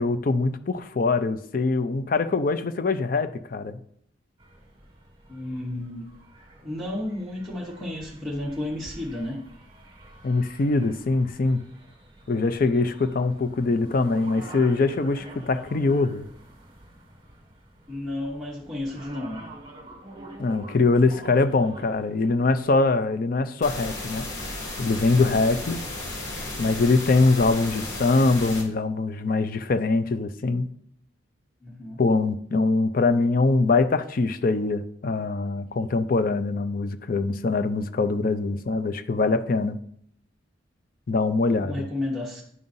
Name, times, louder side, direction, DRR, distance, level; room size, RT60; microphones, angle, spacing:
voice 1, 0.0-3.8 10.2-11.6 12.3-16.3 20.4-24.3 24.8-25.8 26.6-30.7 32.0-39.8 41.1-41.9, left 3 dB, 50° left, 11 dB, 0.4 m, -23 dB
sound 1, 4.4-22.7, right 1 dB, 25° right, 1.4 m, -47 dB
voice 2, 5.3-6.1 6.6-9.4 17.9-19.4 31.6-32.0 41.5-42.4, left 1 dB, 5° left, -5 dB, 0.9 m, -32 dB
sound 2, 23.6-28.6, left 2 dB, 70° left, 1.7 m, -34 dB
9.6 x 5.4 x 2.6 m, 0.66 s
head